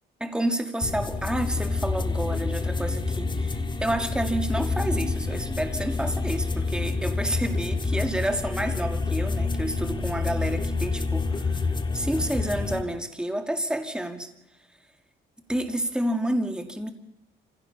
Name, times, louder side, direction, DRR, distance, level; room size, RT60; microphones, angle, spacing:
voice 1, 0.2-14.3 15.5-16.9, right 1 dB, 5° right, 5 dB, 2.0 m, -29 dB
sound 1, 0.8-12.8, left 3 dB, 25° left, 1.6 m, -28 dB
27.5 x 16.5 x 5.8 m, 0.92 s
cardioid pair, 90°, 20 cm